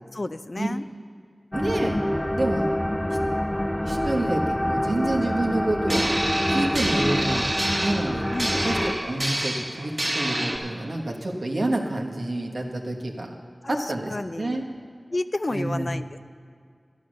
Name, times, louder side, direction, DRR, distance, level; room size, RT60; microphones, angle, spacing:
voice 1, 0.1-0.8 8.3-8.8 13.6-14.6 15.1-16.2, left 2 dB, 55° left, 11 dB, 0.5 m, -31 dB
sound 1, 1.5-8.9, equal, 15° left, 0.7 m, -26 dB
voice 2, 1.5-2.0 2.4-2.7 3.8-6.2 6.5-13.3 13.7-14.6 15.5-15.9, right 2 dB, 75° right, 1 dB, 1.4 m, -28 dB
sound 2, 5.9-10.6, right 1 dB, 40° right, 1.8 m, -27 dB
12.0 x 11.0 x 6.4 m, 2.2 s
wide cardioid pair, 40°, 0 cm